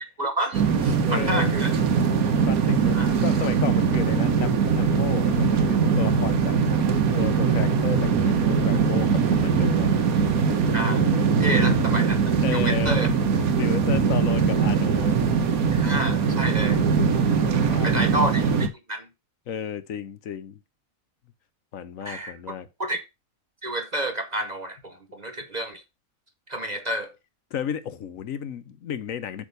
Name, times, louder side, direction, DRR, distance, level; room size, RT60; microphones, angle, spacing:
voice 1, 0.2-1.7 2.9-3.1 10.7-11.1 11.4-12.2 12.5-13.1 15.7-16.8 17.8-19.1 22.0-22.3 22.8-23.0 23.6-25.8 26.5-27.1, right 1 dB, 35° right, 0.8 m, -29 dB
sound 1, 0.5-18.7, right 5 dB, 80° right, 1.4 m, -21 dB
voice 2, 1.0-1.6 2.4-6.6 7.1-9.9 11.6-11.7 12.4-13.0 13.5-15.2 17.4-18.1 19.5-20.6 21.7-22.7 27.5-29.4, left 8 dB, 70° left, 1.2 m, -33 dB
8.3 x 3.6 x 6.7 m
omnidirectional pair, 1.5 m